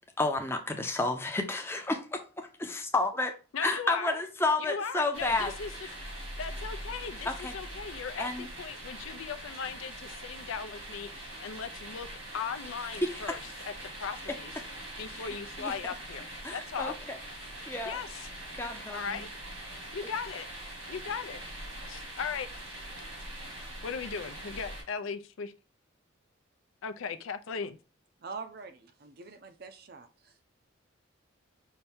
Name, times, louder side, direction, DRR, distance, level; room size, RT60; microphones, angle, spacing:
voice 1, 0.2-3.3 3.6-5.5 7.3-7.6 8.2-8.5 13.0-13.3 15.2-15.7 16.4-17.2 17.6-18.0 18.5-19.3, left 2 dB, 10° left, 0.6 m, -31 dB
voice 2, 3.5-4.2 4.6-5.7 6.4-12.1 12.3-13.4 13.9-14.5 15.0-16.2 16.5-17.0 17.9-18.3 18.9-19.3 19.9-20.5 20.9-21.4 21.9-22.8 23.8-25.5 26.8-27.8, left 6 dB, 75° left, 0.5 m, -37 dB
sound 1, 5.1-24.8, right 1 dB, 85° right, 2.0 m, -43 dB
voice 3, 28.2-30.4, right 5 dB, 50° right, 0.5 m, -45 dB
5.6 x 2.7 x 3.5 m
head